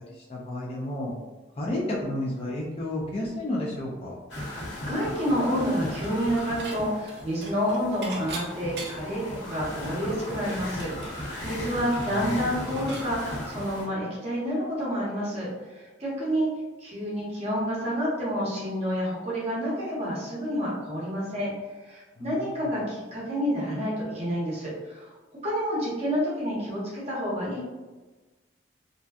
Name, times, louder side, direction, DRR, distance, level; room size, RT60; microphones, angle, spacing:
voice 1, 0.1-1.1 1.6-4.1 12.0-12.2 22.2-22.7, left 1 dB, 30° left, -4 dB, 0.4 m, -32 dB
sound 1, 4.3-13.8, left 1 dB, 85° left, 0.9 m, -37 dB
voice 2, 4.4-16.5 16.8-21.5 21.8-25.1 25.4-27.6, equal, 35° right, -7 dB, 0.9 m, -29 dB
Dishes pots and pans / Chink clink, 6.0-6.8 7.1-9.2 9.6-9.7 10.0-13.1, right 3 dB, 60° right, 0.5 m, -42 dB
2.6 x 2.2 x 2.3 m, 1.2 s
head